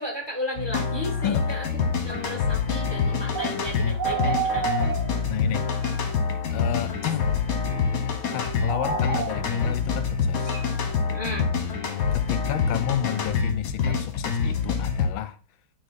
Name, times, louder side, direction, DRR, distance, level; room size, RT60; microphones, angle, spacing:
voice 1, 0.0-4.7 11.1-11.6, equal, 10° right, 2.0 m, -34 dB
sound 1, 0.6-15.1, left 6 dB, 50° left, 1.5 m, -26 dB
sound 2, 3.3-3.6 4.0-5.3 5.8-5.9 6.6-7.2 8.4-9.7 10.5-10.6, right 7 dB, 60° right, 2.0 m, -29 dB
voice 2, 5.3-5.7 6.5-7.3 8.3-10.6 12.1-15.4, left 11 dB, 80° left, 1.3 m, -31 dB
9.5 x 3.6 x 4.1 m
omnidirectional pair, 2.2 m